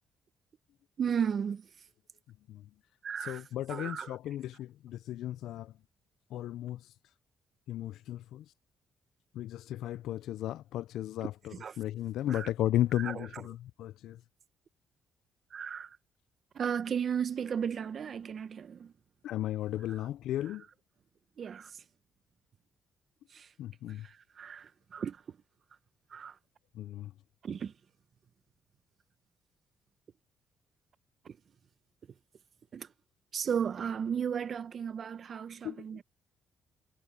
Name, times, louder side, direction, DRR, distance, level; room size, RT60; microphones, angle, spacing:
voice 1, 1.0-1.7 3.0-4.2 11.5-11.8 12.3-12.5 12.9-13.4 15.5-16.0 16.5-18.9 19.9-20.0 20.5-20.6 21.4-21.8 23.3-23.5 23.9-25.4 26.1-26.4 27.4-27.7 31.2-31.4 32.7-32.9 33.3-36.0, right 7 dB, 50° right, 0.9 m, -35 dB
voice 2, 3.2-5.7 6.3-6.8 7.7-8.4 9.4-14.2 19.2-20.6 23.6-24.1 26.8-27.1 35.6-35.8, left 13 dB, 85° left, 0.3 m, -35 dB
cardioid pair, 90°, 0 cm